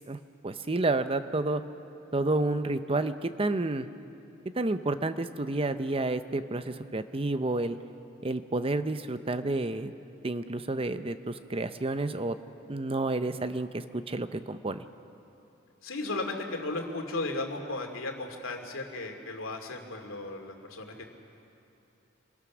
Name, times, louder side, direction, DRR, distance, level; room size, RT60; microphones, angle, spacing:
voice 1, 0.0-1.6 2.1-3.9 4.6-7.8 8.2-9.9 10.2-12.4 12.7-14.8, right 2 dB, 30° right, 10 dB, 0.7 m, -30 dB
voice 2, 15.8-20.9, left 2 dB, 90° left, 3 dB, 2.5 m, -35 dB
26.5 x 20.5 x 6.2 m, 2.9 s
head